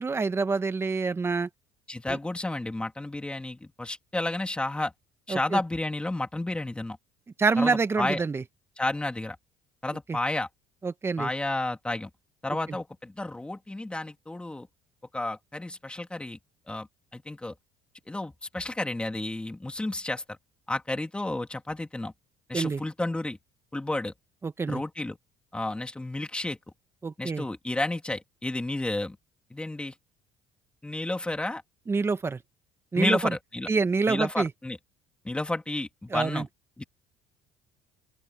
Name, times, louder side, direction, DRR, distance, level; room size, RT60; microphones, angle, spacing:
voice 1, 0.0-1.5 2.1-2.2 5.3-5.6 7.4-8.4 10.1-10.2 10.8-11.3 22.5-22.8 24.4-24.8 27.0-27.5 31.9-32.4 32.9-33.4 33.7-34.5 36.1-36.5, right 4 dB, 20° right, 1.5 m, -26 dB
voice 2, 1.9-4.9 5.3-7.0 7.6-8.2 8.8-9.4 9.8-10.5 11.2-12.1 12.4-14.7 15.1-16.4 16.7-16.9 17.1-17.5 18.1-20.2 20.7-22.1 22.5-23.4 23.7-24.1 24.7-25.2 25.5-26.6 27.2-29.2 29.5-29.9 30.8-31.6 32.9-33.7 34.1-34.8 35.2-36.5 36.8-36.9, left 2 dB, 10° left, 2.9 m, -31 dB
open air
cardioid pair, 115°, 12 cm